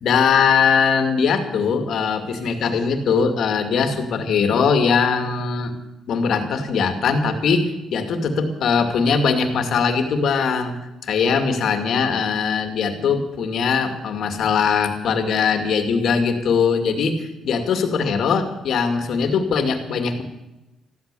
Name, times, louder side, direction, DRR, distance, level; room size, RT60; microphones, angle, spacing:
voice 1, 0.0-5.7 6.1-10.8 11.0-20.2, left 5 dB, 70° left, 6 dB, 2.4 m, -21 dB
15.0 x 12.5 x 6.9 m, 1.0 s
cardioid pair, 90°, 0 cm